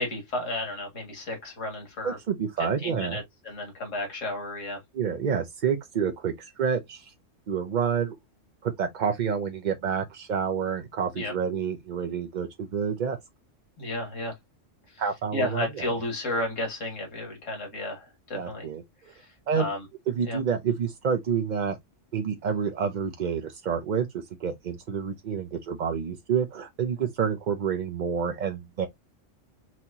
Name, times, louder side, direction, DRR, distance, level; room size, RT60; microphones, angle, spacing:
voice 1, 0.0-2.2 2.6-4.8 11.1-11.3 13.8-14.3 14.9-15.0 15.3-18.7 19.1-19.3 19.5-19.9 20.2-20.4, left 1 dB, 75° left, 2.4 m, -32 dB
voice 2, 2.0-3.2 4.9-7.1 7.5-8.2 8.6-13.2 15.0-15.9 16.3-16.4 18.3-18.8 19.5-19.7 20.1-21.8 22.1-28.9, right 7 dB, 50° right, 0.5 m, -28 dB
5.9 x 2.9 x 2.7 m
omnidirectional pair, 1.3 m